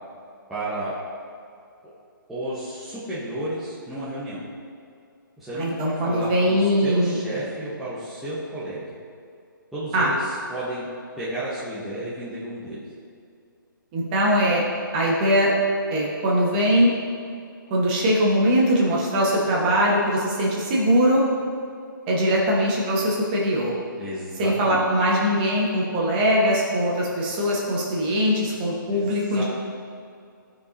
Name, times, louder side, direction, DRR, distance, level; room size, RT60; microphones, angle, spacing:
voice 1, 0.5-1.0 2.3-4.4 5.4-8.9 9.7-10.9 11.1-12.8 24.0-24.8 28.9-29.4, right 1 dB, ahead, -13 dB, 0.9 m, -32 dB
voice 2, 5.5-7.2 9.9-10.1 13.9-14.6 14.9-15.5 15.9-16.9 17.7-21.2 22.1-23.7 24.4-29.4, equal, 25° right, -3 dB, 1.3 m, -21 dB
14.0 x 4.9 x 2.7 m, 2.4 s
hypercardioid pair, 160°, 12 cm